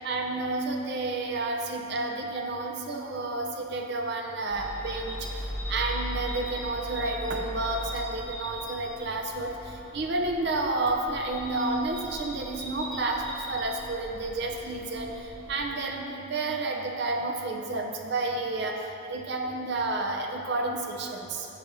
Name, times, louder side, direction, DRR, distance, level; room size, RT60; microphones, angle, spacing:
voice 1, 0.0-5.4 5.7-15.2 15.5-21.5, right 2 dB, 55° right, 2 dB, 0.7 m, -30 dB
sound 1, 4.5-15.6, equal, ahead, 1.7 m, -39 dB
9.9 x 6.2 x 2.7 m, 2.9 s
head